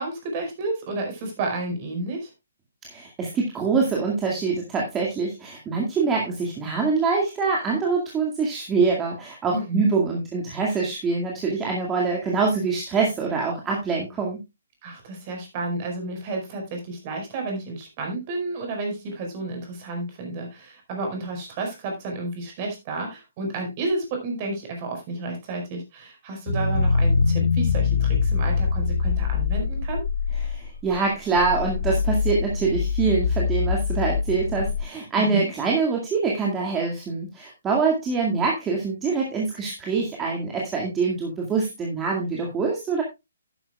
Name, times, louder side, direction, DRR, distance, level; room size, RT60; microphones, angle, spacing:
voice 1, 0.0-2.3 9.5-9.9 14.8-30.0 35.1-35.5, right 2 dB, 35° right, 2 dB, 5.1 m, -31 dB
voice 2, 2.8-14.4 30.4-43.0, right 4 dB, 15° right, -1 dB, 2.1 m, -25 dB
sound 1, 26.5-34.8, left 5 dB, 55° left, 1.5 m, -24 dB
11.5 x 11.0 x 2.4 m, 0.23 s
figure-of-eight pair, 135°, 0 cm